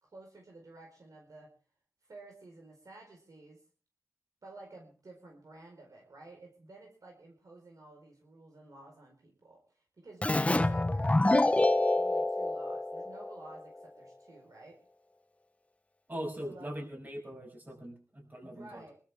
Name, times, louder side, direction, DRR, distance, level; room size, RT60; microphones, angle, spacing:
voice 1, 0.0-1.5 2.1-3.6 4.4-14.8 16.4-16.7 18.4-19.0, right 2 dB, 65° right, 0 dB, 4.5 m, -52 dB
Keyboard (musical), 10.2-13.6, left 2 dB, 20° left, 0.8 m, -27 dB
voice 2, 16.1-18.8, equal, 30° right, 2 dB, 6.8 m, -41 dB
25.0 x 13.0 x 3.6 m, 0.39 s
wide cardioid pair, 75°, 7 cm